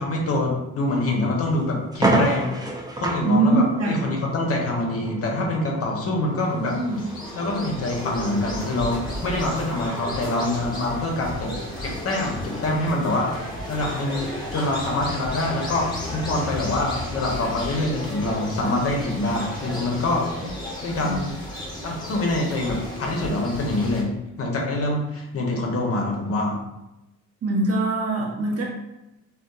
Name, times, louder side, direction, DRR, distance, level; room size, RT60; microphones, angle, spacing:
voice 1, 0.0-6.8 7.3-11.5 11.8-13.3 13.7-20.3 20.8-21.3 21.8-26.6, left 2 dB, 50° left, 0 dB, 0.7 m, -25 dB
sound 1, 0.9-1.1 1.5-1.6 1.9-10.6, right 2 dB, 15° right, 0.4 m, -31 dB
voice 2, 3.2-4.0 6.8-7.0 21.0-21.2 27.4-28.6, right 2 dB, 50° right, -2 dB, 0.7 m, -23 dB
sound 2, 6.4-24.0, left 1 dB, 15° left, 0.8 m, -34 dB
2.6 x 2.3 x 2.2 m, 0.94 s
cardioid pair, 90°, 30 cm